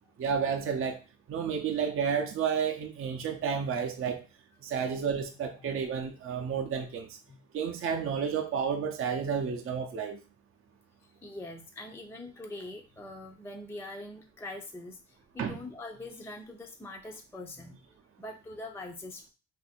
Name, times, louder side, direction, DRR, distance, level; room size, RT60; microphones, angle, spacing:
voice 1, 0.2-1.0 1.3-4.2 4.6-7.1 7.5-10.2 15.4-15.6, right 6 dB, 45° right, 0.6 m, -31 dB
voice 2, 11.2-17.8 18.2-19.3, left 2 dB, 10° left, 0.5 m, -43 dB
2.6 x 2.6 x 4.2 m
cardioid pair, 90°, 30 cm